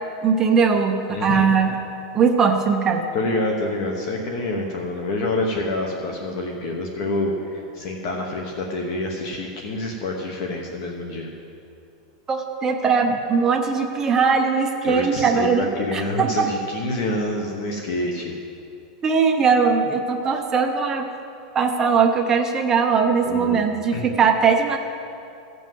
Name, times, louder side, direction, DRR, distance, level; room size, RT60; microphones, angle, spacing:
voice 1, 0.2-1.7 2.1-3.0 12.3-16.5 19.0-21.1 21.5-24.8, right 5 dB, 15° right, 3 dB, 0.6 m, -20 dB
voice 2, 1.1-1.5 3.1-11.3 14.8-18.3 23.2-24.1, left 2 dB, 45° left, 1 dB, 1.0 m, -27 dB
15.5 x 5.4 x 7.5 m, 2.6 s
supercardioid pair, 180°, 3 cm